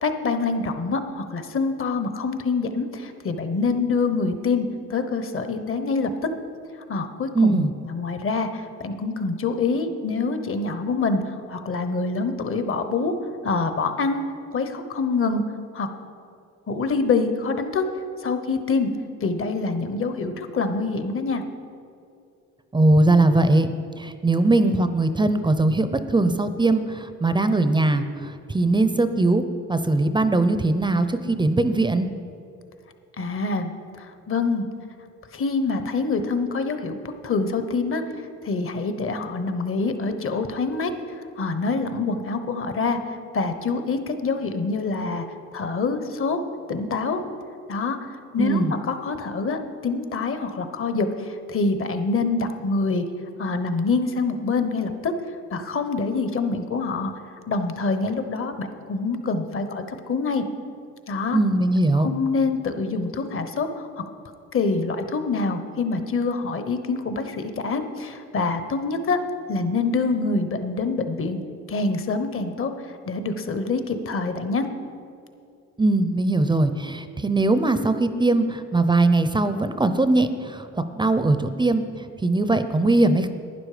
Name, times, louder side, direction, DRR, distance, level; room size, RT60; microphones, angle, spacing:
voice 1, 0.0-6.3 6.9-13.1 13.4-14.2 14.5-15.4 15.7-15.9 16.7-17.8 18.2-18.9 19.2-21.4 33.2-33.7 34.0-34.7 35.3-37.0 37.2-38.0 38.4-40.9 41.4-43.0 43.3-45.3 45.5-46.4 46.7-47.2 47.7-48.0 48.3-53.0 53.4-55.1 55.5-57.1 57.5-60.4 61.1-61.4 61.9-63.9 64.5-69.2 69.5-71.4 71.7-72.7 73.1-74.7, left 4 dB, 45° left, 9 dB, 1.0 m, -25 dB
voice 2, 7.3-7.7 22.7-29.4 29.7-32.1 48.4-48.7 61.3-62.1 75.8-83.3, right 2 dB, 15° right, 10 dB, 0.6 m, -20 dB
11.5 x 9.8 x 5.0 m, 2.5 s
cardioid pair, 90°, 30 cm